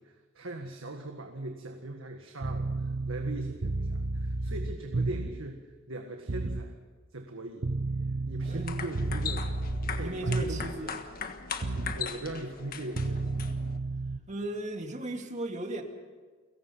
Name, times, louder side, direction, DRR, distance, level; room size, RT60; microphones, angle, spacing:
voice 1, 0.0-6.8 7.1-7.7 8.3-9.5 10.0-11.0 11.9-13.4, right 2 dB, 85° right, 4 dB, 1.8 m, -40 dB
sound 1, 2.4-5.5 6.3-6.7 7.6-10.8 11.6-12.0 13.0-14.2, right 2 dB, 65° right, 1.0 m, -32 dB
sound 2, 8.4-13.8, left 6 dB, 45° left, 1.5 m, -39 dB
voice 2, 10.0-11.0 11.6-12.0 14.3-15.8, right 1 dB, 35° right, 4 dB, 2.3 m, -36 dB
29.5 x 17.5 x 5.7 m, 1.4 s
head